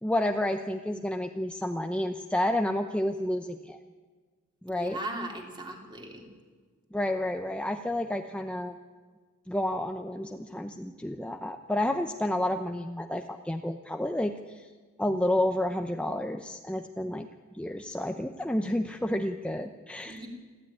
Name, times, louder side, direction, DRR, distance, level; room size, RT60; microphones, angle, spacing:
voice 1, 0.0-3.8 4.6-5.0 6.9-8.7 9.5-14.7 15.0-17.3 17.5-20.2, left 1 dB, 5° left, 5 dB, 0.7 m, -30 dB
voice 2, 4.7-6.3 20.0-20.3, right 1 dB, 20° right, 1 dB, 3.4 m, -38 dB
29.0 x 12.5 x 9.8 m, 1.5 s
head